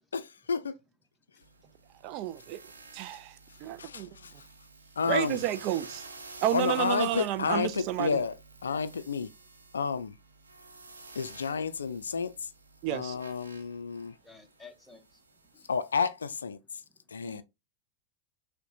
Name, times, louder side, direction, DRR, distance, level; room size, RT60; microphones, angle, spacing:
voice 1, 0.1-0.7 3.8-4.3 5.0-5.4 6.5-8.3 8.6-9.3 9.7-10.1 11.2-12.3 12.9-14.1 15.7-16.6 17.1-17.4, left 5 dB, 70° left, 0.3 m, -30 dB
voice 2, 1.3-1.7 14.2-15.2 15.5-15.7 16.9-17.4, left 3 dB, 5° left, 0.8 m, -54 dB
sound 1, 1.4-16.0, right 3 dB, 75° right, 0.7 m, -51 dB
voice 3, 2.0-2.6 2.9-4.1 5.0-6.1 6.4-8.2 12.8-13.2, right 13 dB, 40° right, 0.3 m, -31 dB
6.3 x 2.1 x 2.7 m
figure-of-eight pair, 90°, 0 cm